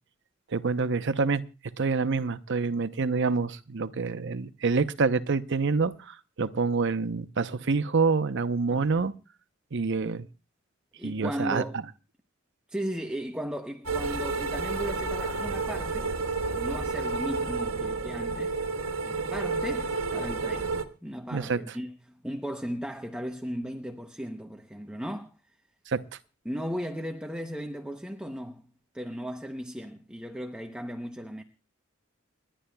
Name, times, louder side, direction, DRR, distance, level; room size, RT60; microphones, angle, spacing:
voice 1, 0.5-1.4 1.8-9.1 9.7-10.3 11.0-11.6 21.3-21.6 25.9-26.0, right 4 dB, 60° right, 0.8 m, -27 dB
voice 2, 11.0-11.8 12.7-16.1 16.5-18.6 19.0-25.3 26.4-28.7 28.9-31.4, equal, 5° right, 0.8 m, -36 dB
sound 1, 13.8-20.8, right 4 dB, 85° right, 1.4 m, -30 dB
30.0 x 11.5 x 2.3 m
head